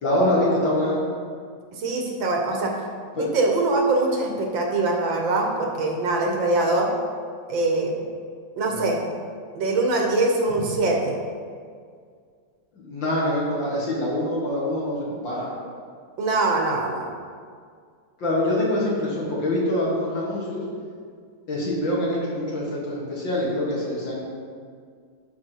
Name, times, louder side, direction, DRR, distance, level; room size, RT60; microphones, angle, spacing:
voice 1, 0.0-1.0 3.2-3.3 8.7-8.9 12.7-15.5 18.2-20.6 21.5-24.2, left 1 dB, 75° left, -6 dB, 2.9 m, -25 dB
voice 2, 1.7-2.8 3.1-6.9 7.5-8.0 8.6-9.0 9.6-11.2 16.2-17.1, right 2 dB, 80° right, 1 dB, 2.0 m, -23 dB
11.0 x 5.0 x 4.7 m, 2.1 s
omnidirectional pair, 2.1 m